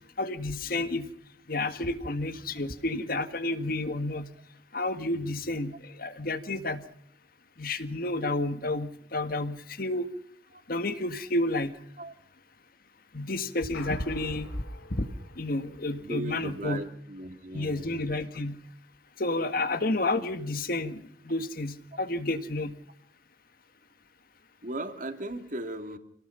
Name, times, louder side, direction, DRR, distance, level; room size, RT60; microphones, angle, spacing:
voice 1, 0.2-1.1 1.5-4.3 4.7-5.7 6.0-6.8 7.6-10.1 10.7-11.7 13.1-14.5 15.0-15.1 15.4-16.8 17.5-18.6 19.2-22.7, left 2 dB, 50° left, 10 dB, 1.8 m, -30 dB
sound 1, 13.7-16.2, left 3 dB, 80° left, 3.9 m, -48 dB
voice 2, 15.9-18.0 24.6-26.0, right 1 dB, 45° right, 8 dB, 2.5 m, -37 dB
27.0 x 18.5 x 5.7 m, 0.66 s
head